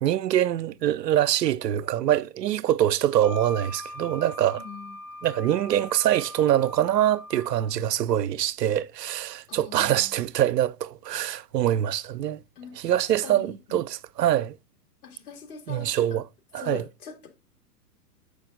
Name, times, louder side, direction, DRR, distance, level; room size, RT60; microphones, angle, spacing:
voice 1, 0.0-4.6 5.2-12.4 12.8-14.6 15.7-16.2 16.5-16.8, right 11 dB, 80° right, 0.6 m, -24 dB
Wind instrument woodwind instrument, 3.2-7.7, left 1 dB, 15° left, 0.3 m, -41 dB
voice 2, 4.6-5.0 9.5-10.1 12.6-13.8 15.0-16.2 16.6-17.3, left 6 dB, 65° left, 2.5 m, -42 dB
7.1 x 5.1 x 3.8 m
hypercardioid pair, 115°, 48 cm